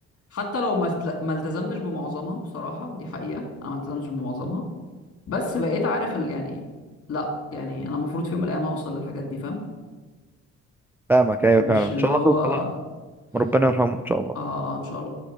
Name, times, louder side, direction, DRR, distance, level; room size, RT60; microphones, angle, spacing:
voice 1, 0.3-4.6 5.3-6.6 7.1-9.6 11.6-12.8 14.3-15.1, left 2 dB, 50° left, 1 dB, 2.3 m, -28 dB
voice 2, 11.1-12.6 13.3-14.4, right 2 dB, 10° right, 7 dB, 0.3 m, -20 dB
9.6 x 6.1 x 5.0 m, 1.3 s
cardioid pair, 90°, 30 cm